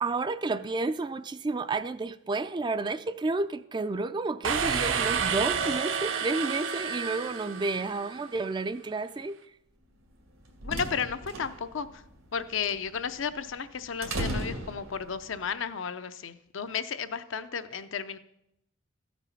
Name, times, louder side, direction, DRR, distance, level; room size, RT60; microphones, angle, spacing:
voice 1, 0.0-9.4, right 3 dB, 20° right, 0.3 m, -31 dB
sound 1, 4.4-8.2, right 6 dB, 70° right, 0.7 m, -30 dB
sound 2, 10.1-15.4, right 1 dB, 90° right, 2.1 m, -37 dB
voice 2, 10.6-12.0 12.3-18.2, left 6 dB, 65° left, 0.6 m, -33 dB
14.0 x 6.0 x 5.7 m
head